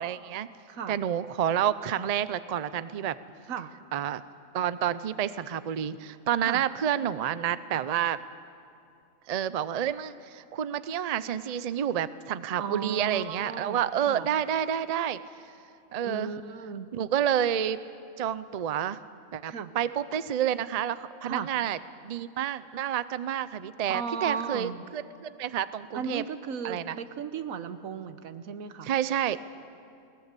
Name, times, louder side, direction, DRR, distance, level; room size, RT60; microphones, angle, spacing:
voice 1, 0.0-0.5 0.9-3.2 3.9-4.2 4.5-8.2 9.3-15.2 15.9-16.3 16.9-17.8 18.2-19.0 19.3-21.8 22.0-26.2 26.6-27.0 28.8-29.4, right 10 dB, 55° right, 15 dB, 0.4 m, -29 dB
voice 2, 0.7-1.0 3.5-3.7 6.5-6.6 12.6-14.3 16.0-16.9 19.4-19.7 21.3-21.5 23.9-24.8 25.9-28.9, right 6 dB, 90° right, 11 dB, 1.4 m, -35 dB
19.5 x 19.0 x 8.2 m, 2.6 s
omnidirectional pair, 1.4 m